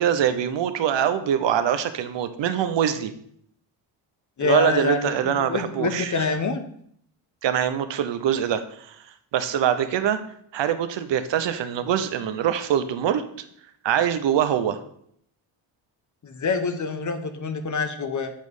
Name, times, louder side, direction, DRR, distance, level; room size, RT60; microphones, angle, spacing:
voice 1, 0.0-3.1 4.4-6.3 7.4-9.0 9.3-10.2 10.5-13.2 13.8-14.8, right 9 dB, 60° right, 10 dB, 0.7 m, -23 dB
voice 2, 4.4-6.6 16.2-18.3, left 4 dB, 35° left, 8 dB, 0.8 m, -26 dB
8.4 x 3.1 x 5.3 m, 0.67 s
cardioid pair, 95°, 49 cm